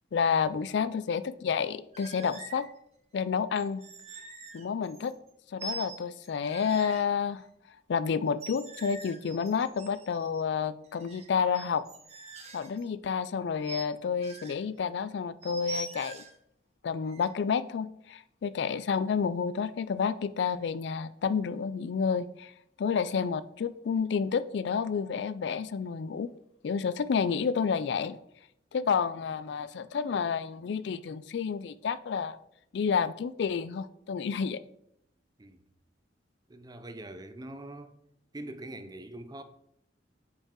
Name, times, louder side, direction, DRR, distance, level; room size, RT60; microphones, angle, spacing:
voice 1, 0.1-2.7 3.1-3.8 4.5-5.1 5.5-7.4 7.9-11.8 12.5-16.2 16.8-22.5 22.8-26.3 26.6-28.2 28.7-32.4 32.7-34.6, left 6 dB, 65° left, 0.4 m, -30 dB
sound 1, 1.9-2.7 3.5-5.3 5.6-7.0 8.3-10.4 10.8-12.8 13.6-13.8 14.2-14.6 15.4-16.4 17.1-17.3, right 3 dB, 35° right, 1.2 m, -44 dB
voice 2, 36.5-37.9 38.3-39.4, right 1 dB, 20° right, 0.6 m, -43 dB
9.0 x 5.3 x 3.7 m
head